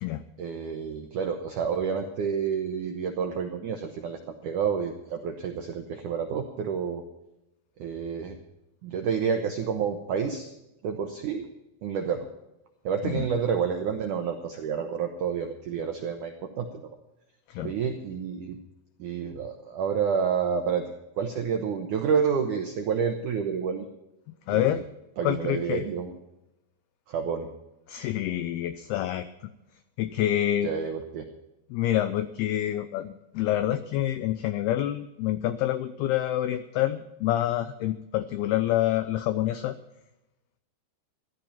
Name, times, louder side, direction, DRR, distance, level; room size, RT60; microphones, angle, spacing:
voice 1, 0.4-7.0 7.8-8.4 8.8-10.5 10.8-11.5 11.8-12.3 12.8-16.8 17.6-18.6 19.0-23.9 24.5-24.8 25.2-26.1 27.1-27.5 30.6-31.3, right 6 dB, 85° right, 5 dB, 1.8 m, -29 dB
voice 2, 24.5-24.8 25.2-25.8 27.9-29.3 30.0-30.7 31.7-39.8, left 13 dB, 90° left, 12 dB, 2.2 m, -27 dB
15.5 x 12.0 x 5.7 m, 0.91 s
omnidirectional pair, 5.4 m